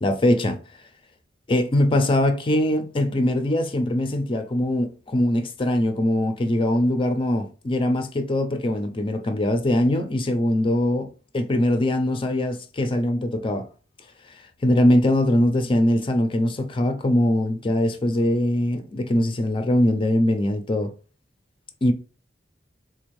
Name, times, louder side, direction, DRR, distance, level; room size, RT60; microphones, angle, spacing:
voice 1, 0.0-0.6 1.5-13.7 14.6-20.9 21.8-21.9, left 1 dB, 30° left, 0.5 m, -22 dB
3.9 x 2.6 x 3.1 m
head